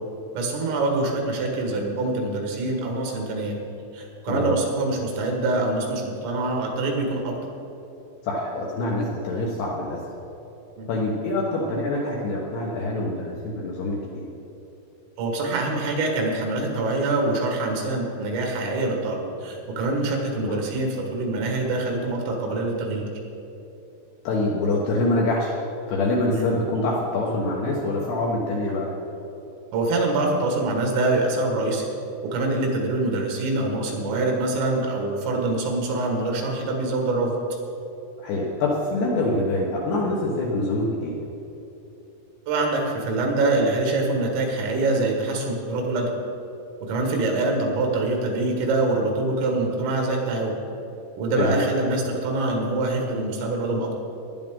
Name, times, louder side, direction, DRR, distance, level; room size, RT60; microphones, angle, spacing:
voice 1, 0.3-3.6 3.9-7.4 10.8-10.9 15.2-23.1 26.3-26.5 29.7-31.8 32.3-37.4 42.5-46.1 46.8-50.6 51.2-53.9, right 2 dB, 75° right, 1 dB, 4.1 m, -25 dB
voice 2, 8.2-10.1 10.9-14.2 20.5-20.6 24.2-25.5 25.9-28.9 38.2-41.2 51.4-51.6, left 2 dB, 70° left, -3 dB, 2.6 m, -25 dB
15.5 x 11.0 x 3.7 m, 3.0 s
omnidirectional pair, 6.0 m